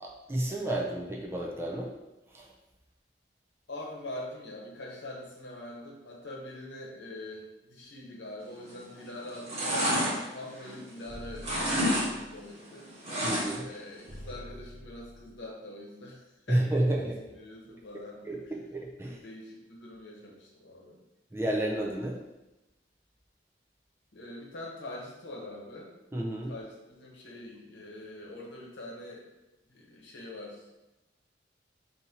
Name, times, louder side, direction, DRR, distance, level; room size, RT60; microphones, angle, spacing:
voice 1, 0.0-1.9 2.3-2.5 13.2-13.7 16.5-17.2 18.3-19.2 21.3-22.2 26.1-26.5, right 1 dB, 15° right, -2 dB, 0.5 m, -31 dB
voice 2, 3.7-12.9 13.5-18.4 19.0-21.0 24.1-25.9 26.5-29.2 29.7-30.7, left 1 dB, 70° left, -2 dB, 1.0 m, -44 dB
sound 1, 8.6-9.0 9.3-11.1 11.4-12.1 12.3-13.8 14.1-14.2, equal, 35° right, 1.3 m, -29 dB
sound 2, 11.1-12.5 14.1-15.5, equal, 75° right, 0.8 m, -47 dB
5.1 x 2.8 x 2.8 m, 0.98 s
head